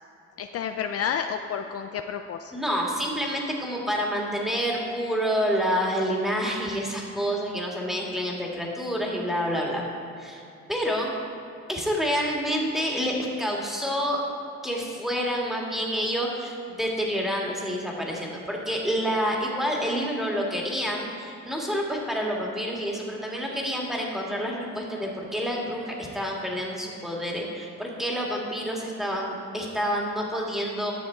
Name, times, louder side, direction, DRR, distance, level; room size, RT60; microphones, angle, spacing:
voice 1, 0.4-2.7, left 7 dB, 50° left, 6 dB, 0.4 m, -31 dB
voice 2, 2.5-9.9 10.2-10.4 10.7-11.1 11.7-14.2 14.6-30.9, equal, ahead, -2 dB, 1.8 m, -28 dB
10.5 x 6.4 x 4.4 m, 2.7 s
cardioid pair, 90°, 30 cm